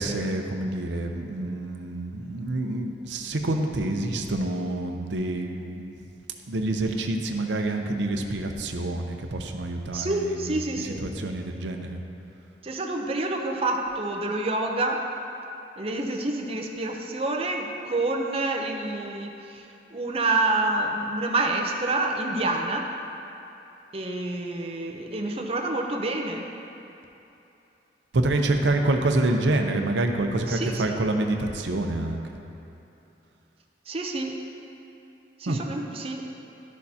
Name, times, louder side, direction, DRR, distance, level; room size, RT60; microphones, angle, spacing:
voice 1, 0.0-5.9 6.5-12.0 28.1-32.2 35.5-35.6, right 2 dB, 85° right, 4 dB, 0.6 m, -27 dB
voice 2, 9.9-11.1 12.6-15.0 15.8-22.9 23.9-26.5 30.5-31.0 33.9-34.4 35.4-36.2, right 2 dB, 35° right, 2 dB, 0.6 m, -28 dB
11.5 x 6.5 x 2.8 m, 2.9 s
head